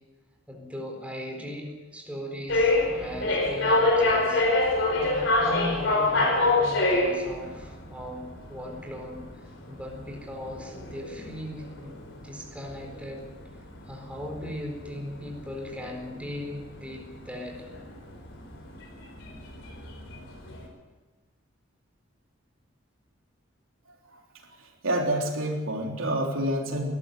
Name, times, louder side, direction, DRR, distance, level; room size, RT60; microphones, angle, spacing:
voice 1, 0.5-11.9 12.2-13.2 13.8-17.6, left 1 dB, 5° right, 1 dB, 4.3 m, -38 dB
sound 1, 2.5-20.7, left 2 dB, 65° left, 4.7 m, -27 dB
voice 2, 24.8-26.9, right 1 dB, 85° right, 1 dB, 3.6 m, -27 dB
20.5 x 13.5 x 9.2 m, 1.3 s
head